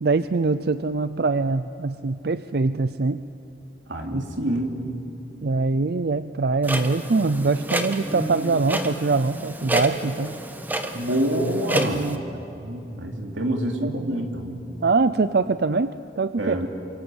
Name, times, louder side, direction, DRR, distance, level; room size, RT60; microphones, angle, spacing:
voice 1, 0.0-3.2 4.1-4.2 5.4-10.4 11.7-12.2 13.8-13.9 14.8-16.6, right 3 dB, 60° right, 13 dB, 0.5 m, -23 dB
voice 2, 3.9-4.7 10.9-12.0 12.6-14.6 16.4-16.7, right 1 dB, 90° right, 3 dB, 3.3 m, -26 dB
Clock, 6.6-12.2, right 1 dB, 10° right, 1.4 m, -29 dB
28.5 x 26.0 x 8.0 m, 2.9 s
head